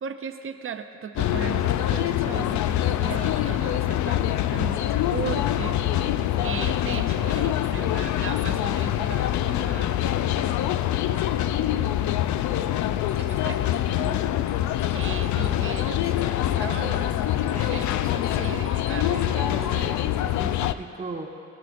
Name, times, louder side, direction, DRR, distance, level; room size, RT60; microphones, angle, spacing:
voice 1, 0.0-13.6 14.6-17.2 17.6-19.6, right 7 dB, 45° right, 8 dB, 0.6 m, -38 dB
sound 1, 1.2-20.7, left 12 dB, 70° left, 0.5 m, -25 dB
voice 2, 5.5-6.4 14.0-14.2 17.5-17.9 19.1-21.3, right 3 dB, 25° right, 1 dB, 1.4 m, -38 dB
sound 2, 12.8-19.9, left 4 dB, 50° left, 1.4 m, -44 dB
20.0 x 12.5 x 2.6 m, 2.6 s
cardioid pair, 90°, 30 cm